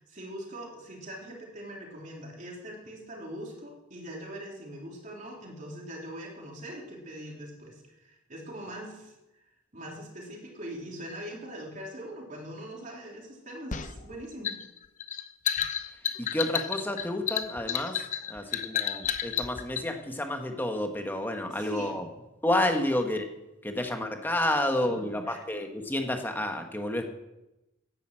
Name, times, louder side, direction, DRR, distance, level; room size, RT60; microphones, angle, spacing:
voice 1, 0.0-9.1 9.7-14.6 18.3-18.7 21.5-22.0 24.8-25.4, equal, 40° right, -1 dB, 3.6 m, -42 dB
sound 1, 13.7-19.9, left 9 dB, 40° left, 0.7 m, -31 dB
voice 2, 16.2-18.0 18.3-22.0 22.4-23.2 23.6-27.0, left 1 dB, 10° left, 4 dB, 1.4 m, -30 dB
11.0 x 9.7 x 7.6 m, 0.95 s
head